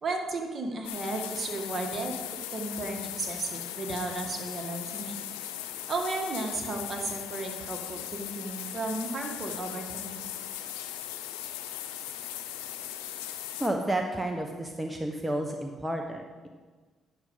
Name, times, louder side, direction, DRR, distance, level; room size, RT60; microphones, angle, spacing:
voice 1, 0.0-2.2 2.5-5.2 5.9-10.4, right 2 dB, 40° right, 2 dB, 1.9 m, -34 dB
sound 1, 0.8-13.7, left 11 dB, 90° left, 0.6 m, -38 dB
voice 2, 13.6-16.5, right 1 dB, 10° right, 3 dB, 1.0 m, -31 dB
9.8 x 6.4 x 5.5 m, 1.4 s
supercardioid pair, 55°, 0 cm